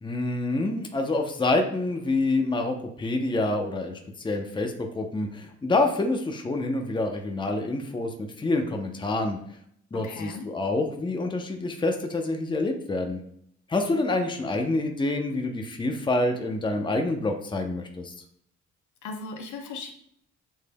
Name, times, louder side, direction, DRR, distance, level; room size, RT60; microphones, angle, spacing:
voice 1, 0.0-4.0 4.2-9.4 9.9-13.2 13.7-18.1, left 2 dB, 15° left, 4 dB, 0.7 m, -27 dB
voice 2, 10.0-10.5 19.0-19.9, left 3 dB, 75° left, 3 dB, 0.9 m, -37 dB
7.2 x 3.2 x 2.2 m, 0.68 s
cardioid pair, 90°, 30 cm